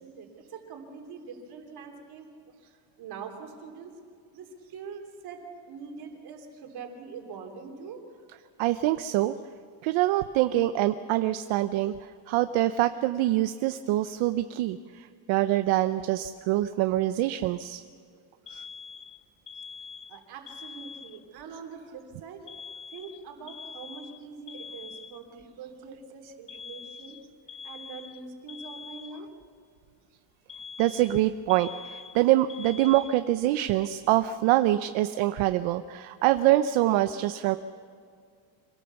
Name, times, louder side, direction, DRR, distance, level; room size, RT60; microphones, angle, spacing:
voice 1, 0.0-2.3 3.0-3.9 4.3-8.0 13.2-13.4 20.1-22.4 22.9-27.2 27.6-29.3, right 5 dB, 50° right, 3 dB, 3.4 m, -43 dB
voice 2, 8.6-9.3 9.8-11.9 12.3-17.8 18.5-18.6 30.8-37.6, right 14 dB, 75° right, 10 dB, 0.8 m, -25 dB
Alarm, 18.5-21.4 22.5-25.4 26.5-29.5 30.5-33.5, left 6 dB, 15° left, 0.4 m, -44 dB
25.5 x 17.5 x 7.0 m, 2.3 s
cardioid pair, 175°, 47 cm